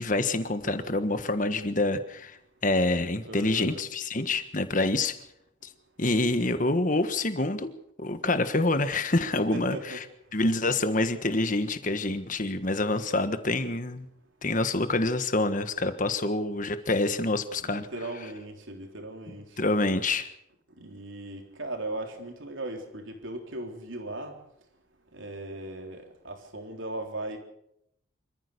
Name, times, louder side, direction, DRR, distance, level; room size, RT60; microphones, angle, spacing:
voice 1, 0.0-2.4 2.6-5.2 6.0-7.7 8.0-10.0 10.3-14.1 14.4-17.9 19.6-20.3, left 2 dB, 40° left, 1.4 m, -27 dB
voice 2, 3.2-3.8 9.5-10.0 17.6-19.5 20.8-24.3 25.1-27.4, right 1 dB, 70° right, 3.7 m, -38 dB
26.5 x 14.5 x 6.8 m
head